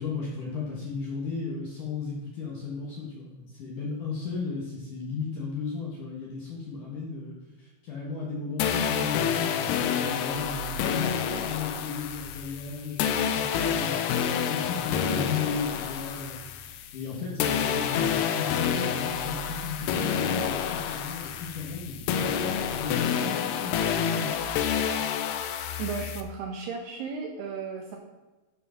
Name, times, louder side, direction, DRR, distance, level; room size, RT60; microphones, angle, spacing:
voice 1, 0.0-24.4, left 5 dB, 60° left, -3 dB, 2.2 m, -35 dB
sound 1, 8.6-17.1 17.4-26.2, left 8 dB, 90° left, 2.3 m, -28 dB
voice 2, 25.8-28.0, right 5 dB, 75° right, 2 dB, 2.5 m, -35 dB
12.0 x 5.0 x 5.7 m, 1.2 s
omnidirectional pair, 5.6 m